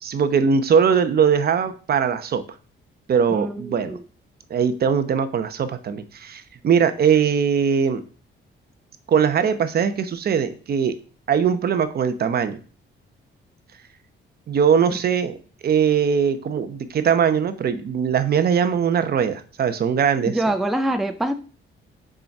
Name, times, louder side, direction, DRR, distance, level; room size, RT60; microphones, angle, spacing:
voice 1, 0.0-2.4 3.1-4.0 4.5-8.0 9.1-11.0 11.3-12.6 14.5-20.4, right 7 dB, 50° right, 10 dB, 0.9 m, -21 dB
voice 2, 3.3-4.0 20.2-21.3, right 1 dB, ahead, 7 dB, 0.5 m, -25 dB
6.7 x 5.1 x 6.0 m, 0.39 s
cardioid pair, 150°, 21 cm